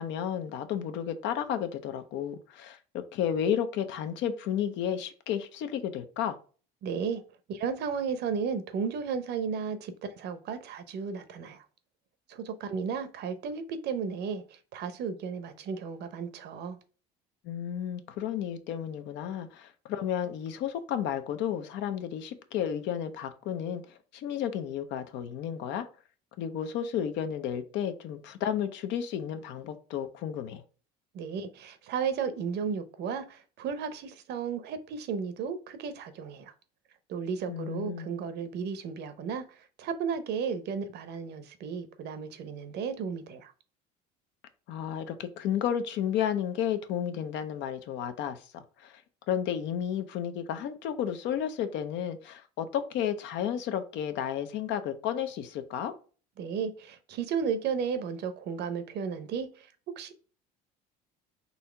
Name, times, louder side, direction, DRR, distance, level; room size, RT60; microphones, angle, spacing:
voice 1, 0.0-6.4 17.4-25.9 26.4-30.6 37.5-38.1 44.7-49.0 49.3-55.9, left 9 dB, 65° left, 0.7 m, -32 dB
voice 2, 6.8-7.2 7.5-11.6 12.3-14.4 14.7-16.8 31.1-36.5 37.1-39.4 39.8-43.5 56.4-59.7 60.0-60.1, right 6 dB, 55° right, 0.8 m, -34 dB
4.1 x 2.8 x 4.4 m
supercardioid pair, 95°, 20 cm